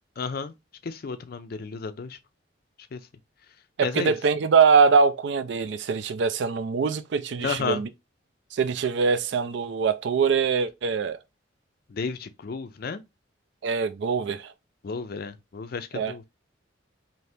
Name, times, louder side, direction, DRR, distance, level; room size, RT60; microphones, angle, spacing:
voice 1, 0.2-0.5 0.8-2.2 2.9-3.0 3.8-4.1 7.4-7.8 11.9-13.0 14.8-16.2, left 5 dB, 50° left, 0.4 m, -32 dB
voice 2, 3.8-7.9 8.5-11.2 13.6-14.5 15.9-16.1, right 5 dB, 65° right, 0.4 m, -23 dB
2.8 x 2.7 x 3.3 m
head